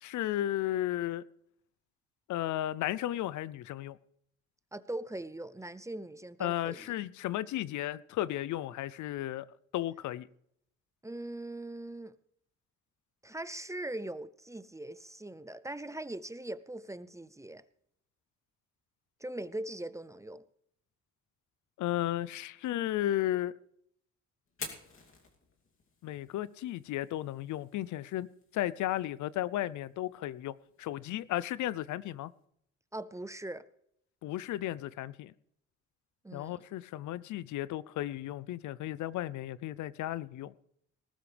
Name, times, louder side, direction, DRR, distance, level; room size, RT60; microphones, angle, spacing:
voice 1, 0.0-1.2 2.3-4.0 6.4-9.5 9.7-10.3 21.8-23.5 26.0-28.3 28.5-32.3 34.2-35.3 36.3-40.5, left 13 dB, 75° left, 0.6 m, -34 dB
voice 2, 4.7-7.0 11.0-12.1 13.2-17.6 19.2-20.4 32.9-33.7 36.2-36.6, right 1 dB, 10° right, 0.5 m, -41 dB
Fire, 24.5-32.4, left 4 dB, 45° left, 2.7 m, -52 dB
19.0 x 12.5 x 3.4 m
cardioid pair, 90°, 30 cm